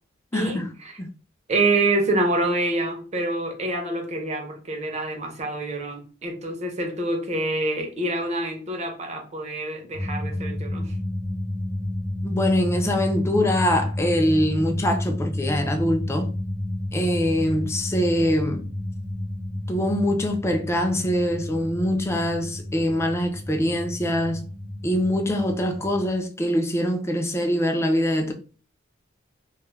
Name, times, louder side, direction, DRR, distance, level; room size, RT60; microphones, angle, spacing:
voice 1, 0.3-0.7 1.0-1.1 12.2-16.3 16.9-18.6 19.7-24.5 24.8-28.3, equal, 15° left, 0.4 m, -23 dB
voice 2, 1.5-10.9, right 2 dB, 35° right, 0.6 m, -26 dB
sound 1, 9.9-26.1, left 1 dB, 45° left, 0.7 m, -31 dB
2.3 x 2.0 x 3.1 m
head